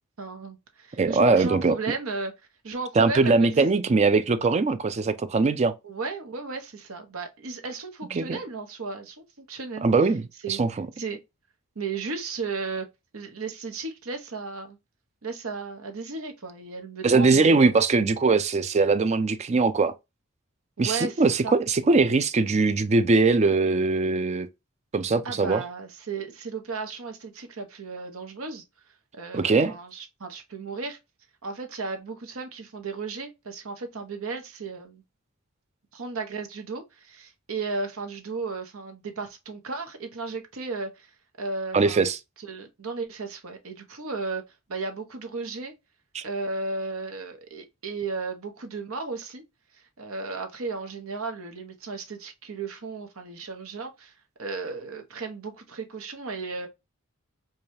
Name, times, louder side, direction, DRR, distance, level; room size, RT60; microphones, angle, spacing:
voice 1, 0.2-2.3 2.6-3.8 5.8-9.9 10.4-10.6 11.0-11.2 11.7-12.9 13.1-14.8 15.2-17.7 20.8-21.5 25.2-28.6 29.1-31.0 31.4-35.0 35.9-42.0 42.4-44.4 44.7-45.7 46.2-49.4 49.7-56.7, right 4 dB, 70° right, 0.9 m, -35 dB
voice 2, 1.0-1.8 3.0-5.7 8.1-8.4 9.8-10.9 17.0-19.9 20.8-24.5 24.9-25.6 29.3-29.8 41.7-42.2 46.1-46.2, right 3 dB, 30° right, 0.4 m, -21 dB
4.8 x 2.3 x 2.7 m
head